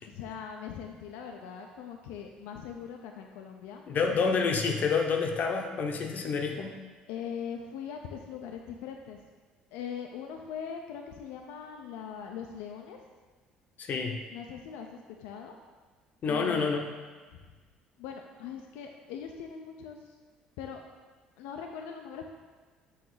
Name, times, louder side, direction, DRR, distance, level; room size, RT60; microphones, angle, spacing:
voice 1, 0.0-3.8 4.1-4.2 7.1-9.2 9.7-13.0 14.3-14.9 15.2-15.6 16.2-16.7 17.3-17.4 18.0-20.1 20.6-20.8 21.4-22.2, left 7 dB, 75° left, 2 dB, 0.5 m, -41 dB
voice 2, 3.9-6.7 13.8-14.2 16.2-16.9, left 5 dB, 50° left, 3 dB, 0.8 m, -28 dB
7.1 x 3.0 x 4.8 m, 1.4 s
hypercardioid pair, 60°, 4 cm